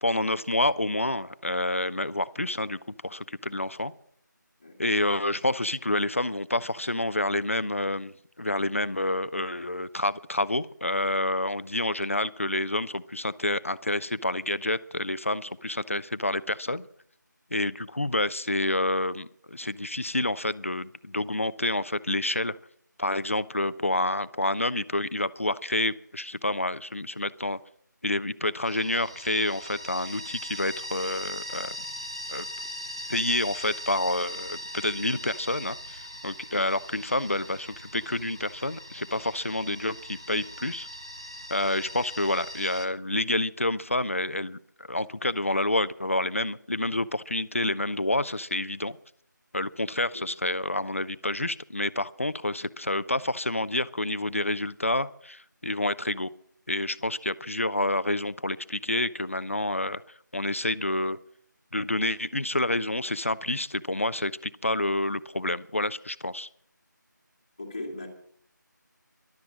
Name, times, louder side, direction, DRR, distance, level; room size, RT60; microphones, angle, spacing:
voice 1, 0.0-3.9 4.8-16.9 17.5-22.6 23.0-27.6 28.0-31.8 32.3-32.5 33.1-40.9 41.5-49.0 49.5-56.3 56.7-60.0 60.3-61.2 61.7-66.5, left 1 dB, 45° left, 16 dB, 0.5 m, -28 dB
sound 1, 28.6-42.9, left 1 dB, 15° right, 0.6 m, -40 dB
voice 2, 67.6-68.1, left 2 dB, 15° left, -2 dB, 1.7 m, -38 dB
13.5 x 12.0 x 6.1 m, 0.64 s
figure-of-eight pair, 180°, 11 cm